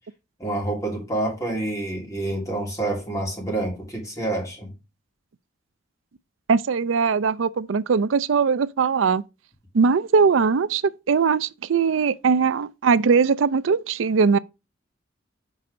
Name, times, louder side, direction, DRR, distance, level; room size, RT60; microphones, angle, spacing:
voice 1, 0.4-4.7, right 2 dB, 15° left, 2.6 m, -28 dB
voice 2, 6.5-9.2 9.7-10.8 11.1-14.4, right 5 dB, 80° right, 0.4 m, -20 dB
6.1 x 4.2 x 4.9 m
head